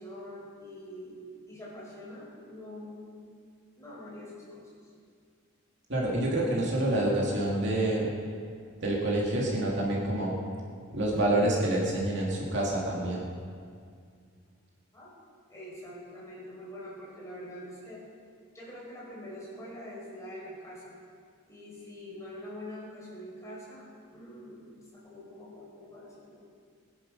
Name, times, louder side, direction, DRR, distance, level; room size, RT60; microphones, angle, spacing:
voice 1, 0.0-3.1 3.7-4.8 14.9-15.1 15.5-18.1 18.5-21.0 21.4-26.4, left 1 dB, 15° left, -6 dB, 5.4 m, -45 dB
voice 2, 5.9-8.1 8.8-10.3 10.9-13.3, right 1 dB, 55° right, -3 dB, 2.7 m, -27 dB
21.5 x 11.0 x 5.4 m, 2.2 s
head